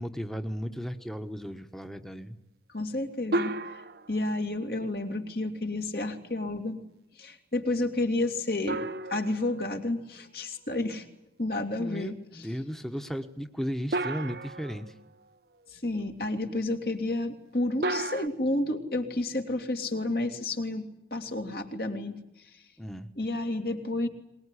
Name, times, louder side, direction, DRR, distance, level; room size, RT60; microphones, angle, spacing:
voice 1, 0.0-2.4 11.8-14.9 22.8-23.1, equal, ahead, 7 dB, 1.2 m, -35 dB
voice 2, 2.7-3.8 4.1-6.8 7.2-8.8 9.1-11.0 11.4-12.5 15.7-22.2 23.2-24.1, left 2 dB, 55° left, 5 dB, 2.7 m, -31 dB
sound 1, 3.3-4.4 8.7-10.2 13.9-15.1 17.8-18.3, right 2 dB, 60° right, 0.9 m, -33 dB
23.0 x 21.0 x 9.9 m, 0.85 s
head